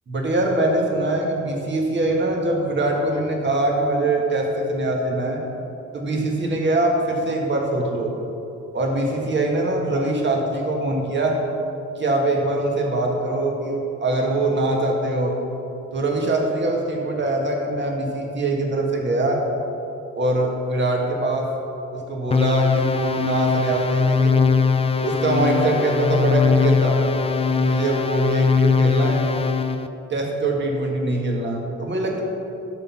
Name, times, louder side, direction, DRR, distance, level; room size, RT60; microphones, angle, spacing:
voice 1, 0.1-5.4 5.9-8.1 8.7-11.4 12.0-15.4 15.9-19.4 20.2-21.5 21.9-24.5 25.0-27.0 27.5-29.4 30.1-32.2, right 2 dB, 40° right, 0 dB, 1.8 m, -23 dB
sound 1, 22.3-29.9, left 5 dB, 20° left, 0.5 m, -20 dB
12.0 x 4.1 x 5.9 m, 2.9 s
cardioid pair, 90°, 30 cm